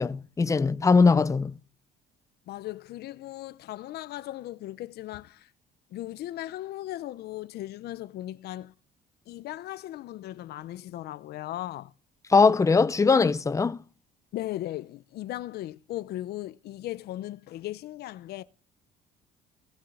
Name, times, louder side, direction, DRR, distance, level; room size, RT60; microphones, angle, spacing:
voice 1, 0.0-1.5 12.3-13.8, left 4 dB, 20° left, 0.7 m, -21 dB
voice 2, 2.5-5.5 5.9-8.7 9.3-11.9 14.3-18.4, left 14 dB, 70° left, 0.8 m, -37 dB
18.0 x 7.4 x 8.8 m
cardioid pair, 110°, 17 cm